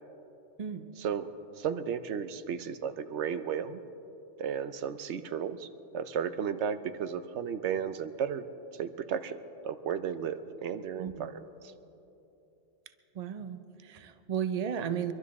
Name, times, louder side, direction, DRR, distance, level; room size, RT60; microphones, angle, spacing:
voice 1, 1.6-3.8 4.4-5.7 5.9-8.4 8.8-9.4 9.6-11.4, right 7 dB, 80° right, 11 dB, 1.0 m, -34 dB
voice 2, 11.0-11.3 13.1-15.1, right 8 dB, 40° right, 10 dB, 0.6 m, -34 dB
24.0 x 12.0 x 4.2 m, 3.0 s
omnidirectional pair, 1.2 m